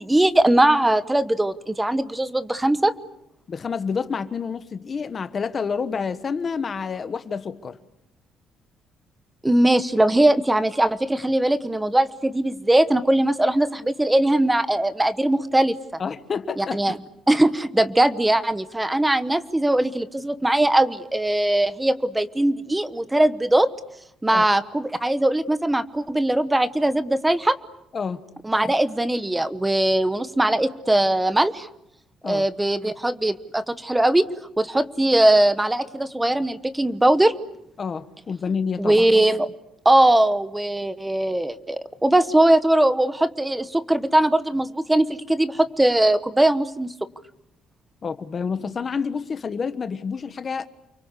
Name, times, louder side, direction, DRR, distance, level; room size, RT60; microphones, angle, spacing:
voice 1, 0.0-2.9 9.4-15.7 16.6-17.0 17.3-23.7 24.2-27.6 28.4-31.7 32.2-34.2 34.6-37.3 38.8-39.5 39.8-46.9, right 1 dB, 5° right, 13 dB, 1.1 m, -20 dB
voice 2, 3.5-7.8 16.0-16.8 24.3-24.4 27.9-28.2 32.2-32.5 37.8-39.0 48.0-50.7, left 5 dB, 25° left, 11 dB, 1.3 m, -28 dB
29.5 x 23.5 x 8.3 m, 0.79 s
cardioid pair, 175°, 0 cm